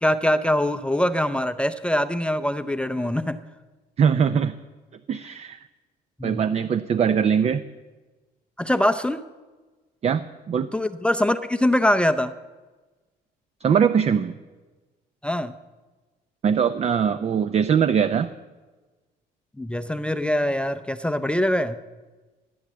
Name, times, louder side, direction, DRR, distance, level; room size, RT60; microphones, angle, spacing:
voice 1, 0.0-3.4 6.2-6.4 8.6-9.2 10.7-12.3 15.2-15.5 19.6-21.8, left 1 dB, 5° left, 10 dB, 0.6 m, -23 dB
voice 2, 4.0-4.5 5.1-5.7 6.2-7.6 10.0-10.7 13.6-14.3 16.4-18.3, right 7 dB, 40° right, 12 dB, 0.6 m, -21 dB
18.0 x 9.5 x 7.5 m, 1.3 s
cardioid pair, 110°, 17 cm